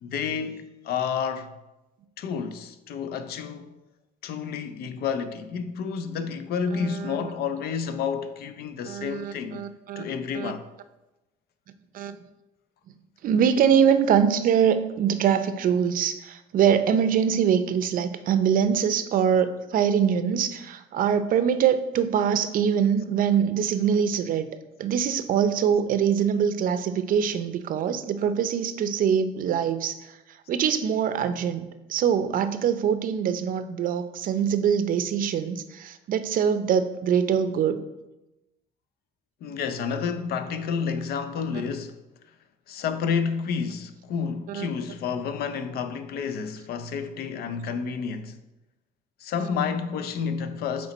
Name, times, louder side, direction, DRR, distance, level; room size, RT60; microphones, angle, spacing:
voice 1, 0.0-1.6 2.2-3.7 4.2-9.6 10.0-10.7 39.4-42.0 42.7-48.4 49.2-50.9, left 6 dB, 70° left, 0.6 m, -30 dB
voice 2, 6.7-7.3 8.9-10.0 10.3-10.5 11.9-12.2 13.2-24.5 24.8-30.2 30.5-31.6 31.9-37.8 41.5-41.6 44.5-44.7, right 8 dB, 55° right, 0.5 m, -23 dB
8.1 x 3.2 x 4.1 m
cardioid pair, 110°, 17 cm